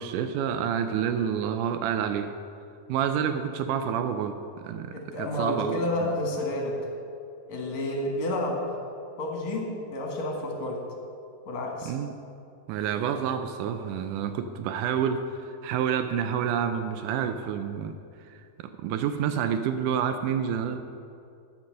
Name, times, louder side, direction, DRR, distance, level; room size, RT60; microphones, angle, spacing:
voice 1, 0.0-2.3 2.9-4.9 5.2-6.1 11.8-12.1 12.7-18.0 18.3-20.8, right 8 dB, 80° right, 8 dB, 1.9 m, -28 dB
voice 2, 4.9-6.8 7.5-8.8 9.2-10.8 11.5-11.9, left 1 dB, 60° left, 0 dB, 2.8 m, -30 dB
13.0 x 6.0 x 6.4 m, 2.5 s
omnidirectional pair, 3.9 m